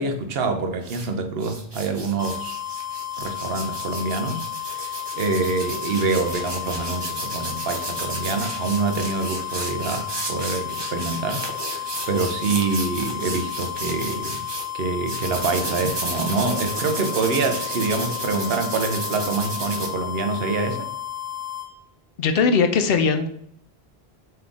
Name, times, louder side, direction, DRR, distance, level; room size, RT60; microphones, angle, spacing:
voice 1, 0.0-2.6 3.2-14.4 14.7-20.9, right 4 dB, 70° right, 6 dB, 0.9 m, -26 dB
sound 1, 0.8-1.1 1.4-14.7 15.1-19.9, right 2 dB, 30° right, 0.7 m, -33 dB
sound 2, 2.2-21.7, left 11 dB, 15° left, 0.8 m, -33 dB
voice 2, 22.2-23.3, left 5 dB, 70° left, 7 dB, 0.8 m, -19 dB
3.5 x 3.3 x 3.7 m, 0.69 s
omnidirectional pair, 1.1 m